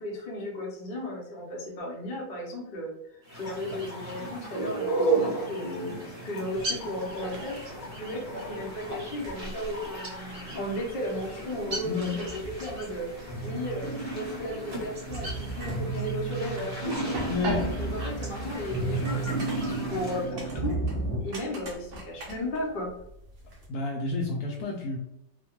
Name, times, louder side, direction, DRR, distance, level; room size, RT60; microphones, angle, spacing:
voice 1, 0.0-13.9 14.1-17.0 17.8-20.8 21.2-22.9, left 1 dB, 50° left, -2 dB, 0.7 m, -35 dB
sound 1, 3.2-20.3, right 2 dB, 45° right, 0.9 m, -35 dB
sound 2, 6.5-23.7, right 1 dB, 65° right, 0.6 m, -43 dB
sound 3, 10.3-10.8 11.4-12.9 13.3-21.2, right 3 dB, 5° left, 0.6 m, -33 dB
voice 2, 11.8-12.2 17.3-17.7 23.7-25.0, left 4 dB, 70° left, 0 dB, 1.0 m, -30 dB
2.9 x 2.1 x 2.9 m, 0.80 s
omnidirectional pair, 1.9 m